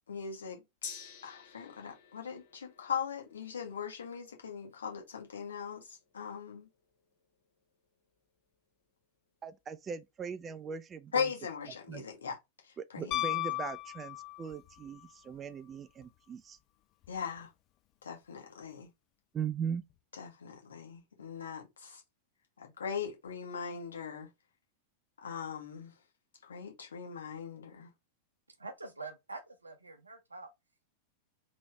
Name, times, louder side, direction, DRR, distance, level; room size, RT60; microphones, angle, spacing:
voice 1, 0.1-0.6 1.2-6.7 11.1-12.4 12.9-13.4 17.1-17.5 18.0-18.9 20.2-22.0 22.6-24.3 25.2-25.9 26.4-27.9, left 6 dB, 70° left, 1.4 m, -39 dB
Gong, 0.8-8.6 8.9-9.0, left 6 dB, 50° left, 1.1 m, -52 dB
voice 2, 9.4-11.3 11.9-12.0 12.8-16.6 19.3-19.8, right 7 dB, 25° right, 0.5 m, -39 dB
Piano, 13.1-14.7 17.0-17.1, left 18 dB, 35° left, 0.3 m, -35 dB
voice 3, 28.6-30.5, right 3 dB, 80° right, 0.9 m, -45 dB
3.5 x 3.0 x 3.3 m
figure-of-eight pair, 90°, 0 cm